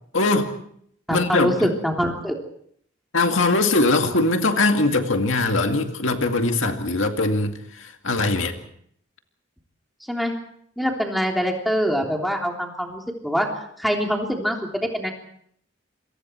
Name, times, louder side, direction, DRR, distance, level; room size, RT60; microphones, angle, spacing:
voice 1, 0.1-0.6 1.1-1.7 3.1-8.6, left 2 dB, 75° left, 5 dB, 2.2 m, -21 dB
voice 2, 1.1-2.4 10.1-10.3 10.8-13.5 13.8-15.1, equal, ahead, 1 dB, 3.4 m, -24 dB
28.0 x 24.0 x 4.6 m, 0.67 s
head